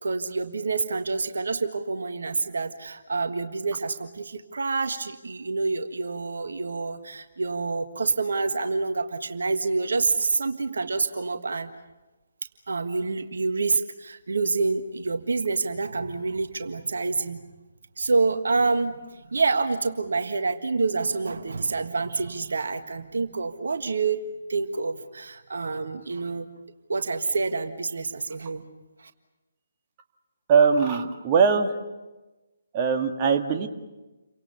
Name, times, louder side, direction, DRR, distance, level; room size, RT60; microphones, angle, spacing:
voice 1, 0.0-11.7 12.7-17.4 18.0-24.2 24.5-26.5 26.9-28.6 29.0-29.1, right 4 dB, 60° right, 8 dB, 1.6 m, -27 dB
voice 2, 30.5-31.8 32.7-33.7, right 5 dB, 25° right, 4 dB, 1.9 m, -21 dB
29.5 x 25.0 x 7.0 m, 1.1 s
figure-of-eight pair, 140°, 0 cm